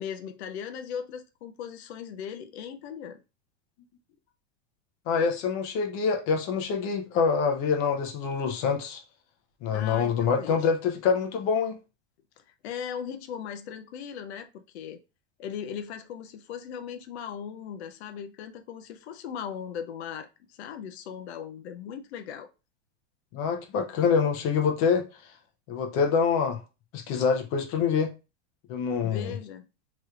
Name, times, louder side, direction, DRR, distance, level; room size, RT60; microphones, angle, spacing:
voice 1, 0.0-3.2 9.7-10.7 12.5-15.0 15.4-22.5 29.0-29.7, left 8 dB, 75° left, 0.6 m, -38 dB
voice 2, 5.1-9.0 9.6-11.8 23.3-25.0 25.7-26.6 26.9-28.1 28.7-29.3, left 6 dB, 40° left, 0.7 m, -25 dB
3.1 x 3.0 x 2.4 m
supercardioid pair, 135°, 33 cm